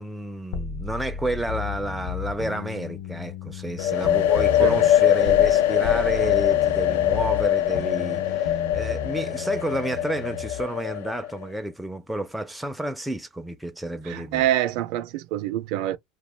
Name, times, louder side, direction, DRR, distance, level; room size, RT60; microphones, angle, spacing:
voice 1, 0.0-14.4, right 1 dB, 5° right, 0.4 m, -31 dB
sound 1, 0.5-5.6 5.8-10.6, left 7 dB, 65° left, 0.7 m, -34 dB
sound 2, 3.8-11.4, left 11 dB, 85° left, 0.3 m, -22 dB
voice 2, 14.0-16.0, right 12 dB, 65° right, 0.5 m, -26 dB
2.3 x 2.3 x 3.3 m
supercardioid pair, 130°, 0 cm